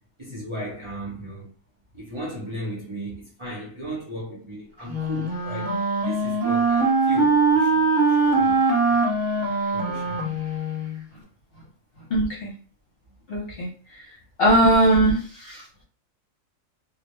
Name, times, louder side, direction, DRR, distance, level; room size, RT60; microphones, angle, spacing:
voice 1, 0.2-1.5 1.9-9.0 9.7-10.3, right 1 dB, 25° right, 0.8 m, -36 dB
Wind instrument woodwind instrument, 4.9-11.0, right 3 dB, 65° right, 0.9 m, -22 dB
voice 2, 12.1-12.5 13.3-14.1 14.4-15.7, right 1 dB, 50° left, 0.9 m, -20 dB
2.3 x 2.1 x 3.1 m
omnidirectional pair, 1.4 m